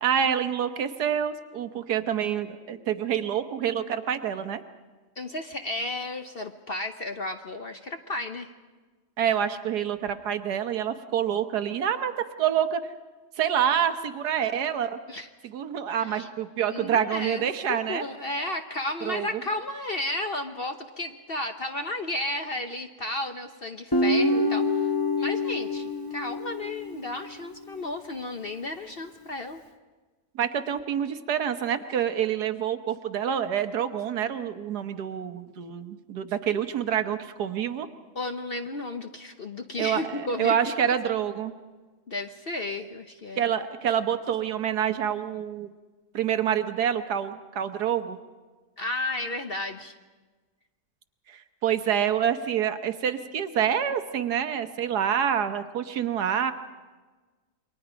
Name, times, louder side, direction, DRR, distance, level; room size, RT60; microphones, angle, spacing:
voice 1, 0.0-4.6 9.2-12.1 12.4-12.8 13.4-15.0 15.5-18.0 19.0-19.4 30.3-37.9 39.8-41.5 43.4-45.7 46.1-48.2 51.3-56.5, right 9 dB, 70° right, 9 dB, 1.5 m, -27 dB
voice 2, 5.2-8.5 15.1-15.3 15.9-16.3 16.7-24.9 25.2-29.6 38.1-40.6 40.8-40.9 42.1-43.4 48.8-49.9, left 2 dB, 45° left, 6 dB, 0.9 m, -33 dB
Guitar, 23.9-27.2, left 2 dB, 20° left, 0.7 m, -26 dB
28.0 x 23.0 x 5.1 m, 1.3 s
omnidirectional pair, 1.8 m